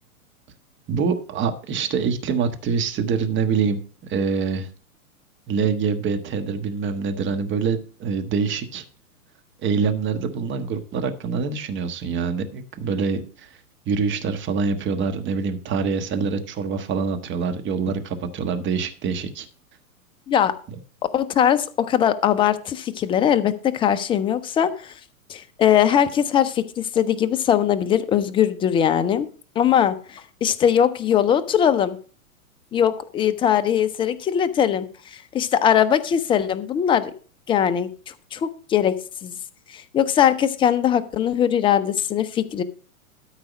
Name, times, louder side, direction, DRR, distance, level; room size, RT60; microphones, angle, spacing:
voice 1, 0.9-4.7 5.5-8.8 9.6-13.5 13.9-19.5, right 5 dB, 25° right, 8 dB, 1.3 m, -25 dB
voice 2, 21.1-24.9 25.3-29.3 29.6-32.0 32.7-37.1 37.5-38.9 39.2-39.4 39.7-42.6, left 9 dB, 10° left, 11 dB, 0.4 m, -21 dB
13.0 x 4.8 x 6.1 m, 0.40 s
hypercardioid pair, 110°, 44 cm